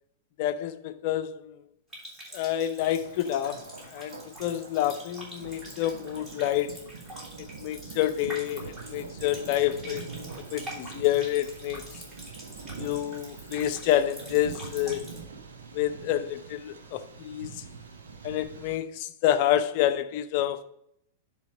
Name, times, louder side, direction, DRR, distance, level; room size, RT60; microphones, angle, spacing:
voice 1, 0.4-1.6 2.3-6.8 7.4-10.1 10.5-11.8 12.8-15.1 15.7-17.6 18.2-20.6, left 12 dB, 45° left, 0.6 m, -28 dB
Water tap faucet, 1.9-15.2, right 1 dB, 15° right, 3.4 m, -45 dB
Thunder, 2.8-18.8, right 4 dB, 65° right, 1.1 m, -44 dB
10.0 x 3.4 x 5.1 m
figure-of-eight pair, 95°, 0 cm